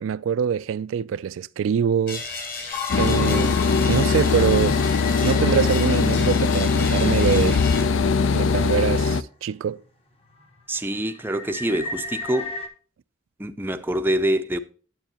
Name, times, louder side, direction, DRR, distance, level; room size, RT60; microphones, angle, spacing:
voice 1, 0.0-2.2 2.9-3.6 3.9-4.8 5.2-7.6 8.3-9.8, right 7 dB, 80° right, 0.3 m, -24 dB
sound 1, 2.1-7.8, left 4 dB, 45° left, 2.0 m, -35 dB
sound 2, 2.7-8.5 9.0-9.1 9.7-9.9 10.3-12.7, left 5 dB, 30° left, 0.9 m, -36 dB
sound 3, 2.9-9.2, left 5 dB, 80° left, 0.5 m, -21 dB
voice 2, 10.7-12.5 13.4-14.6, right 1 dB, 10° right, 0.4 m, -25 dB
9.0 x 7.9 x 2.9 m
head